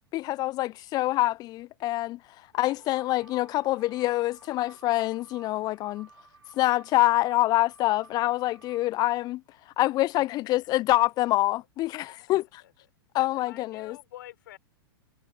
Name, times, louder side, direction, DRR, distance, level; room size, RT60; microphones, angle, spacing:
voice 1, 0.1-2.2 2.5-6.1 6.5-9.4 9.8-12.6 13.1-14.0, left 17 dB, 30° left, 0.9 m, -26 dB
sound 1, 2.5-8.9, right 4 dB, 80° right, 7.0 m, -54 dB
voice 2, 13.5-14.6, left 14 dB, 55° left, 4.5 m, -47 dB
figure-of-eight pair, 100°, 13 cm